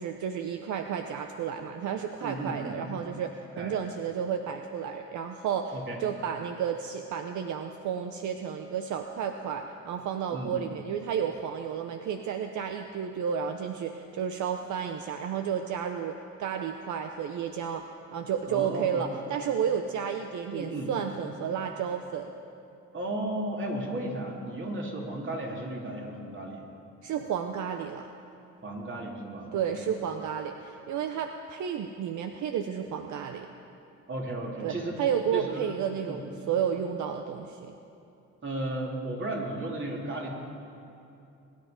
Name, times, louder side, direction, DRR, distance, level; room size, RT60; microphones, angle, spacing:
voice 1, 0.0-17.8 18.1-22.3 27.0-28.1 29.5-33.5 34.6-37.7, right 8 dB, 75° right, 6 dB, 0.8 m, -32 dB
voice 2, 2.2-2.7 3.5-3.7 5.7-6.0 10.3-10.6 18.5-19.0 20.5-20.9 22.9-26.6 28.6-29.9 34.1-35.0 35.3-35.7 36.0-36.2 38.4-40.3, right 1 dB, 40° right, -1 dB, 3.0 m, -34 dB
22.0 x 10.5 x 5.2 m, 2.7 s
cardioid pair, 90°, 30 cm